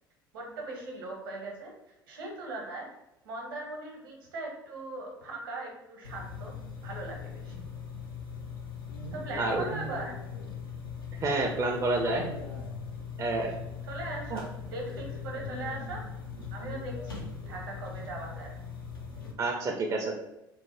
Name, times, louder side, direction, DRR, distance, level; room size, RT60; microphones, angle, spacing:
voice 1, 0.3-1.7 2.1-2.9 3.2-6.5 6.8-7.6 9.1-10.2 13.9-16.0 16.5-18.5, right 2 dB, 70° right, 0 dB, 0.8 m, -39 dB
sound 1, 6.0-19.3, left 5 dB, 80° left, 0.5 m, -40 dB
voice 2, 11.2-12.3 13.2-13.5 14.3-14.4 19.4-20.2, right 2 dB, 30° right, 2 dB, 0.4 m, -28 dB
2.6 x 2.0 x 3.2 m, 0.89 s
figure-of-eight pair, 60°, 12 cm